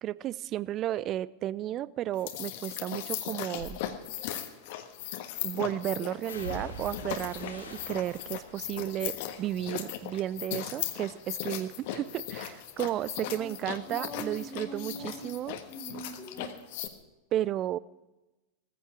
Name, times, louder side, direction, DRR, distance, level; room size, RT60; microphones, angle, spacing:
voice 1, 0.0-3.8 5.4-15.6 17.3-17.8, right 12 dB, 35° right, 0.5 m, -33 dB
sound 1, 2.1-16.9, left 12 dB, 55° left, 1.4 m, -38 dB
sound 2, 3.6-3.8 5.0-5.5 6.3-10.5 10.8-11.5 11.8-15.1 15.4-16.5 16.8-16.9, left 1 dB, 75° left, 2.5 m, -47 dB
voice 2, 13.9-15.3 15.7-16.5, right 1 dB, 25° left, 2.7 m, -42 dB
17.5 x 14.5 x 4.9 m
figure-of-eight pair, 85°, 0 cm